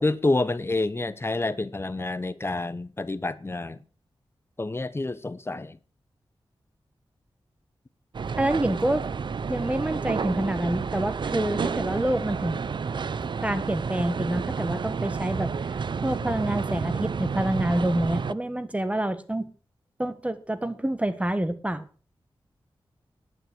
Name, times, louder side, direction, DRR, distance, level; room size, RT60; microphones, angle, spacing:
voice 1, 0.0-3.8 4.6-5.8, left 2 dB, 25° left, 0.9 m, -28 dB
sound 1, 8.1-18.3, right 5 dB, 60° right, 0.5 m, -30 dB
voice 2, 8.4-9.0 9.5-12.6 13.4-15.5 16.0-19.5 20.0-21.8, right 1 dB, 15° right, 1.5 m, -27 dB
11.0 x 9.5 x 6.1 m
wide cardioid pair, 100°, 9 cm